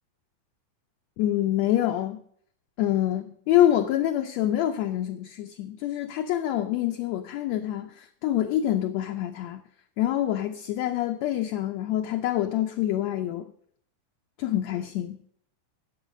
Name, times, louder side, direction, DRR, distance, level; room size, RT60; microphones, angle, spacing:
voice 1, 1.2-2.2 2.8-9.6 10.0-13.5 14.4-15.2, left 12 dB, 80° left, 1.5 m, -26 dB
10.5 x 7.8 x 6.2 m
omnidirectional pair, 3.8 m